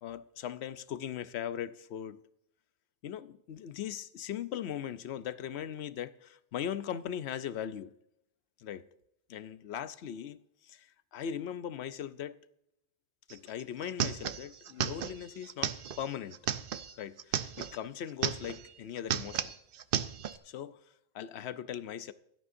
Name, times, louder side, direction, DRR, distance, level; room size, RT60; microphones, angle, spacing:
voice 1, 0.0-2.2 3.0-7.9 8.6-8.8 9.3-12.4 13.3-16.4 17.0-19.5 20.4-20.8 21.1-22.1, left 9 dB, 80° left, 0.9 m, -39 dB
sound 1, 13.3-13.4 13.6-17.8 18.1-18.7 19.0-20.4, right 9 dB, 60° right, 0.8 m, -34 dB
17.0 x 12.5 x 2.6 m
omnidirectional pair, 1.1 m